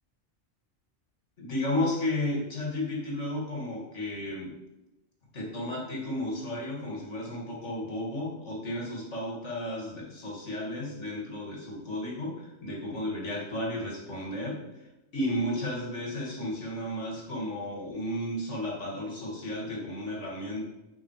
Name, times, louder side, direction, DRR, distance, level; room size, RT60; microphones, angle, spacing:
voice 1, 1.4-4.5 5.3-20.7, left 1 dB, 90° left, -2 dB, 2.6 m, -33 dB
9.4 x 5.7 x 5.0 m, 0.98 s
omnidirectional pair, 1.2 m